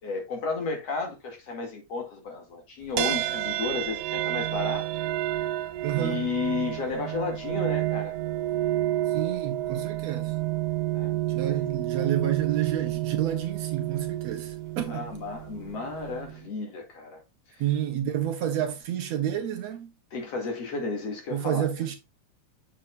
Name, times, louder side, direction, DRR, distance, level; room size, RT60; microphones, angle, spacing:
voice 1, 0.0-4.9 6.0-8.1 10.9-11.2 11.5-11.8 14.9-17.2 20.1-21.7, left 4 dB, 55° left, 3.3 m, -33 dB
sound 1, 3.0-16.5, right 15 dB, 90° right, 2.3 m, -30 dB
voice 2, 5.8-6.2 9.1-10.3 11.3-15.1 17.6-19.9 21.3-22.0, right 10 dB, 70° right, 1.9 m, -30 dB
7.5 x 6.9 x 2.5 m
omnidirectional pair, 3.5 m